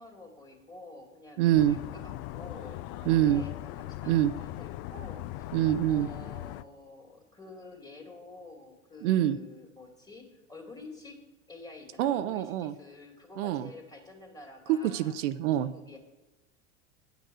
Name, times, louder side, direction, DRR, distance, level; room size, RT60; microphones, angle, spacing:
voice 1, 0.0-5.5 5.9-11.2 11.5-15.1 15.6-16.0, left 2 dB, 10° left, 3 dB, 2.3 m, -49 dB
voice 2, 1.4-1.8 3.1-3.4 4.1-4.3 5.5-6.1 9.0-9.4 12.0-12.7 13.4-13.7 14.7-15.7, right 12 dB, 70° right, 11 dB, 0.6 m, -25 dB
sound 1, 1.5-6.6, left 15 dB, 50° left, 0.4 m, -39 dB
9.4 x 6.7 x 6.2 m, 1.1 s
hypercardioid pair, 95°, 38 cm